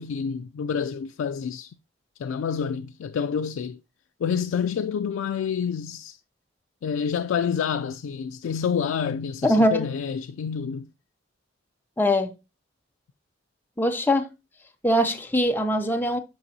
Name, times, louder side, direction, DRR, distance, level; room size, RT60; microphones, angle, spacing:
voice 1, 0.0-1.7 2.2-3.8 4.2-6.2 6.8-10.9, left 7 dB, 80° left, 0.3 m, -28 dB
voice 2, 9.4-9.9 12.0-12.3 13.8-14.3 14.8-16.2, equal, 10° left, 0.6 m, -22 dB
8.5 x 5.3 x 2.7 m
head